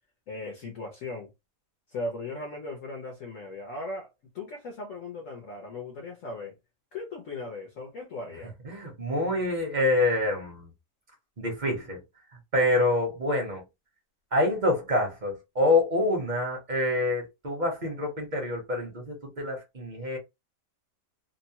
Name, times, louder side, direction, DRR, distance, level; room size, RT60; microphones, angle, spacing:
voice 1, 0.3-1.3 1.9-4.1 4.3-6.5 6.9-8.5, left 2 dB, 60° left, 0.9 m, -37 dB
voice 2, 8.6-10.7 11.4-12.0 12.5-13.6 14.3-20.2, left 2 dB, 35° right, 0.8 m, -26 dB
2.9 x 2.2 x 2.8 m
omnidirectional pair, 1.8 m